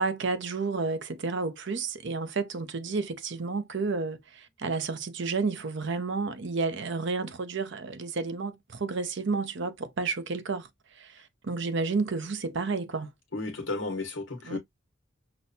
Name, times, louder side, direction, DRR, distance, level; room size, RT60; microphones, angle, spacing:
voice 1, 0.0-10.7 11.0-13.1 14.5-14.6, right 4 dB, 60° right, 0.7 m, -31 dB
voice 2, 13.3-14.6, left 3 dB, 65° left, 1.2 m, -33 dB
6.1 x 2.2 x 2.6 m
head